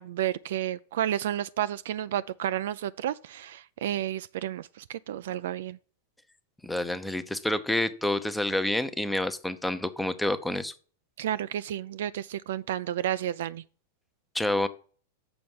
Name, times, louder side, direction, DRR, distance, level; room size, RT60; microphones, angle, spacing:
voice 1, 0.0-5.8 11.2-13.6, right 11 dB, 60° right, 0.3 m, -31 dB
voice 2, 6.6-10.7 14.3-14.7, left 1 dB, 5° left, 0.7 m, -28 dB
7.0 x 5.1 x 7.2 m
figure-of-eight pair, 95°, 0 cm